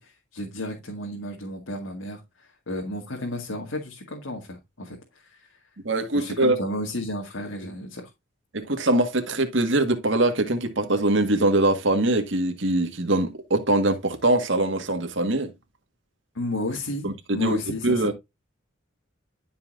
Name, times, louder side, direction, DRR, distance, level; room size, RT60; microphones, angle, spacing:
voice 1, 0.0-5.6 6.1-8.1 16.3-18.1, left 1 dB, 85° left, 2.1 m, -33 dB
voice 2, 5.8-6.6 8.5-15.5 17.0-17.6 17.8-18.1, right 2 dB, 70° right, 1.7 m, -23 dB
12.0 x 5.7 x 2.6 m
head